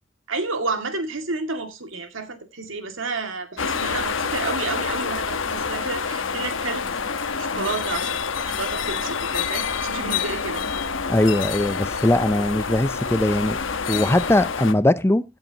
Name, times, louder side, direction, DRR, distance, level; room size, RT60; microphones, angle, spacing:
voice 1, 0.3-6.9 7.4-10.6, right 3 dB, 85° right, 2.1 m, -30 dB
sound 1, 3.6-14.7, left 5 dB, 90° left, 1.1 m, -27 dB
voice 2, 11.1-13.6 13.9-15.2, left 1 dB, 15° left, 0.5 m, -20 dB
16.0 x 8.0 x 2.8 m
head